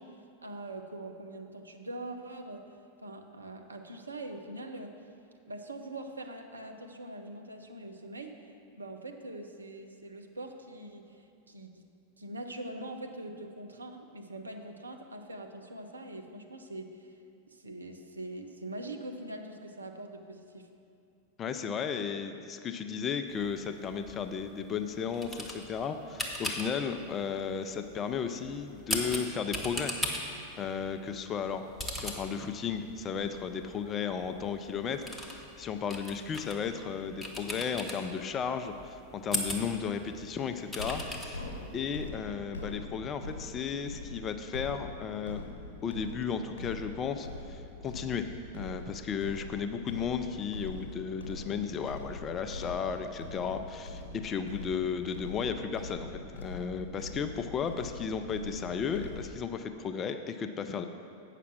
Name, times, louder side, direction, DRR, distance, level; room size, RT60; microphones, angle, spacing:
voice 1, 0.0-4.9 5.5-11.8 12.2-17.1 17.5-20.7, right 1 dB, 80° right, 5 dB, 0.6 m, -43 dB
voice 2, 21.4-29.9 30.6-31.7 31.9-41.4 41.7-45.4 45.8-48.2 48.5-60.8, left 6 dB, 25° left, 8 dB, 0.4 m, -34 dB
sound 1, 23.3-42.1, left 1 dB, 5° left, 1.0 m, -40 dB
sound 2, 40.8-59.3, left 2 dB, 65° left, 1.0 m, -43 dB
8.3 x 5.8 x 5.9 m, 2.5 s
figure-of-eight pair, 90°, 0 cm